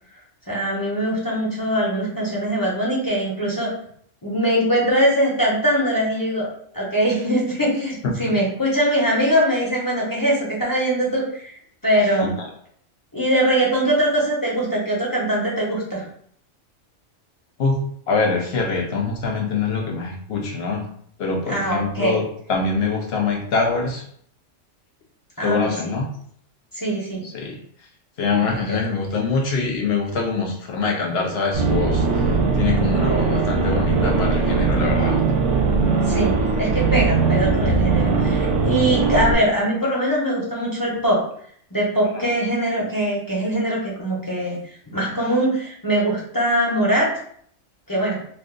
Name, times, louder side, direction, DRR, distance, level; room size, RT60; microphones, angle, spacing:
voice 1, 0.5-3.7 4.2-6.5 6.7-11.6 11.8-12.3 13.1-16.0 21.5-22.2 25.4-25.6 25.9-26.0 26.7-27.2 28.4-28.6 36.0-36.3 36.6-41.2 41.7-47.1 47.9-48.2, right 1 dB, 20° left, -5 dB, 0.7 m, -22 dB
voice 2, 8.0-8.4 11.9-12.3 17.6-20.9 21.2-24.1 25.4-26.1 27.2-27.6 28.2-32.3 32.5-35.2 42.1-42.3, left 4 dB, 65° left, 2 dB, 0.7 m, -24 dB
sound 1, 31.5-39.3, right 4 dB, 70° right, 1.0 m, -20 dB
2.6 x 2.5 x 3.7 m, 0.62 s
omnidirectional pair, 1.3 m